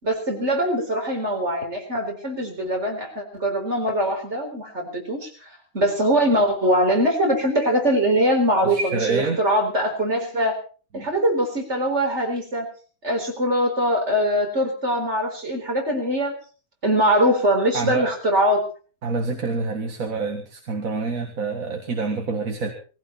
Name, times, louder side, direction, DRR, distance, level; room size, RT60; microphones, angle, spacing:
voice 1, 0.0-10.5 10.9-12.7 13.0-16.4 16.8-18.7, equal, 50° right, 3 dB, 4.4 m, -22 dB
voice 2, 8.6-9.4 11.0-11.1 17.7-18.1 19.0-22.7, right 4 dB, 75° right, 4 dB, 2.1 m, -27 dB
19.5 x 15.5 x 4.2 m, 0.38 s
omnidirectional pair, 1.5 m